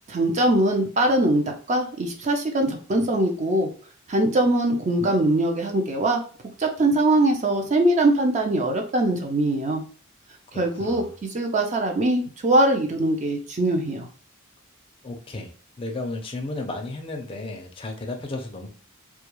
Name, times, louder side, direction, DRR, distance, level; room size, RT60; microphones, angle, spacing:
voice 1, 0.1-3.7 4.1-6.2 6.6-9.8 10.5-11.0 11.3-14.1, right 1 dB, 35° right, 2 dB, 0.4 m, -22 dB
voice 2, 10.5-11.1 15.0-15.5 15.8-18.7, left 2 dB, 25° left, 3 dB, 0.4 m, -33 dB
2.2 x 2.2 x 3.0 m, 0.41 s
head